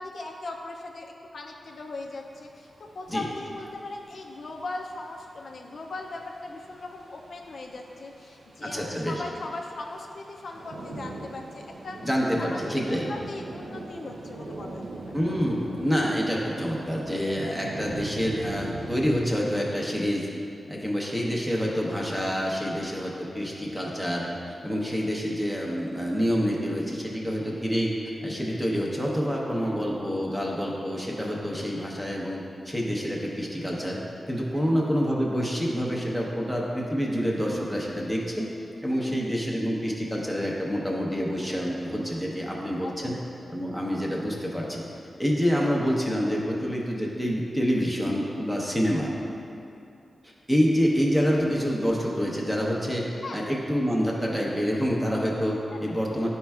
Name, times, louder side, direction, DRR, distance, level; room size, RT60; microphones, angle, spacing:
voice 1, 0.0-12.1 12.4-14.9 29.5-29.9 34.5-34.7 38.9-39.2 42.8-43.2 53.2-53.5 55.7-55.9, left 2 dB, 55° left, 1 dB, 0.4 m, -39 dB
sound 1, 1.7-19.2, right 2 dB, 80° right, 0.6 m, -42 dB
voice 2, 8.6-9.2 12.0-13.1 15.1-20.3 20.7-27.9 28.2-34.0 34.3-38.5 38.8-43.2 43.5-44.8 45.2-49.1 50.2-53.1 53.3-56.3, equal, 5° right, -3 dB, 0.8 m, -27 dB
10.5 x 4.3 x 2.3 m, 2.6 s
wide cardioid pair, 160°, 0 cm